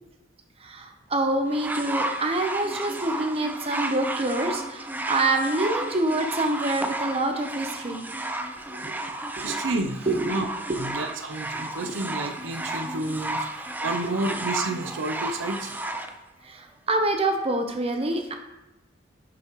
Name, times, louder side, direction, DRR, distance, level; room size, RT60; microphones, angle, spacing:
voice 1, 0.6-8.0 8.7-9.0 9.4-9.6 10.1-10.3 10.7-10.9 14.0-14.1 16.4-18.3, right 2 dB, 30° right, 4 dB, 0.9 m, -26 dB
sound 1, 1.5-16.1 17.0-17.1, right 1 dB, 10° right, 0.5 m, -32 dB
voice 2, 9.4-10.5 10.8-15.7, right 2 dB, 80° right, 6 dB, 0.6 m, -30 dB
10.0 x 6.2 x 3.1 m, 0.94 s
head